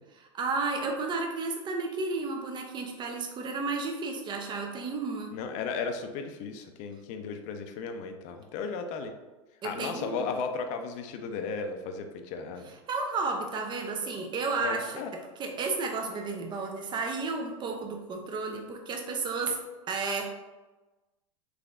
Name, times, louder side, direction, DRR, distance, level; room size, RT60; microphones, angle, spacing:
voice 1, 0.3-5.3 9.6-10.3 12.9-15.0 15.4-19.6 19.9-20.3, right 4 dB, 30° right, 3 dB, 0.6 m, -32 dB
voice 2, 5.3-9.1 9.6-12.7 14.6-15.1, left 5 dB, 45° left, 6 dB, 0.5 m, -35 dB
3.5 x 3.2 x 2.4 m, 1.1 s
hypercardioid pair, 90°, 17 cm